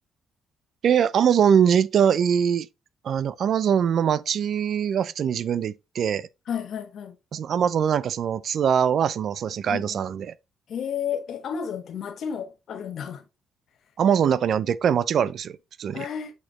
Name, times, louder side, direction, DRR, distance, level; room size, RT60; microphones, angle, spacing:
voice 1, 0.8-2.7 3.0-6.3 7.3-10.3 14.0-16.1, right 8 dB, 60° right, 0.4 m, -22 dB
voice 2, 6.5-7.1 9.7-10.0 10.7-13.2 15.9-16.3, left 8 dB, 65° left, 1.3 m, -32 dB
7.9 x 4.3 x 3.0 m
cardioid pair, 90°, 0 cm